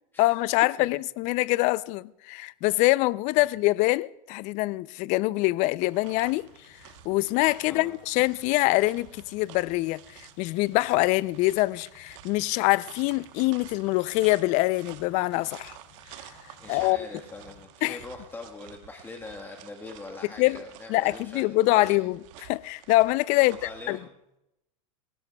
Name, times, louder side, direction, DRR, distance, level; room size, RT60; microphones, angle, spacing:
voice 1, 0.2-6.5 7.1-15.8 16.7-17.0 17.8-18.0 20.4-20.6 20.9-23.6 23.9-24.0, left 20 dB, 45° left, 0.4 m, -24 dB
sound 1, 5.8-23.8, right 12 dB, 60° right, 1.1 m, -51 dB
sound 2, 5.9-17.6, left 6 dB, 60° left, 4.0 m, -58 dB
voice 2, 16.6-22.0 23.3-24.1, left 3 dB, 10° left, 1.4 m, -42 dB
27.5 x 16.5 x 2.3 m
supercardioid pair, 130°, 18 cm